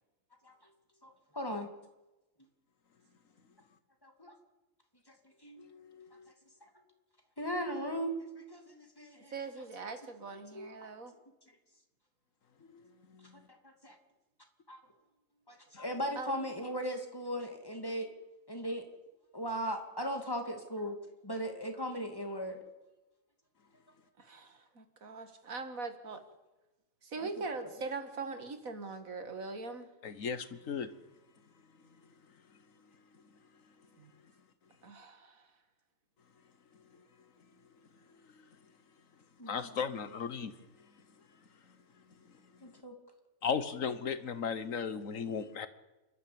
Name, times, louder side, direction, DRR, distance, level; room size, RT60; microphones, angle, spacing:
voice 1, 1.0-1.7 4.0-4.3 5.4-5.6 7.4-9.3 10.5-10.7 13.6-14.0 14.7-14.8 15.5-18.1 18.5-18.8 19.3-21.0 21.2-22.6 27.2-27.3 39.4-39.5 42.6-42.9, equal, 15° left, 4 dB, 2.7 m, -37 dB
voice 2, 5.6-6.3 12.6-12.8 13.1-13.4 15.7-15.8 30.0-30.9 39.5-40.5 43.4-45.7, left 6 dB, 75° left, 13 dB, 1.6 m, -36 dB
voice 3, 9.3-11.1 16.2-16.4 24.2-26.2 27.0-29.9 34.0-34.1 34.8-35.5, right 4 dB, 85° right, 8 dB, 2.4 m, -41 dB
28.5 x 12.5 x 8.7 m, 1.1 s
omnidirectional pair, 1.4 m